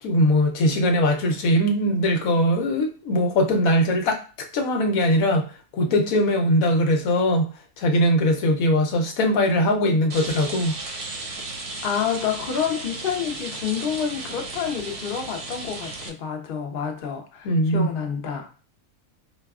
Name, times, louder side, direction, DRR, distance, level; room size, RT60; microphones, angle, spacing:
voice 1, 0.0-5.5 5.7-7.5 7.8-10.7 17.4-17.9, equal, 90° left, 3 dB, 1.1 m, -21 dB
Rain, 10.1-16.1, right 2 dB, 60° right, 0.8 m, -35 dB
voice 2, 11.8-18.5, left 7 dB, 55° left, 3 dB, 0.7 m, -28 dB
4.6 x 2.2 x 2.3 m, 0.36 s
omnidirectional pair, 1.4 m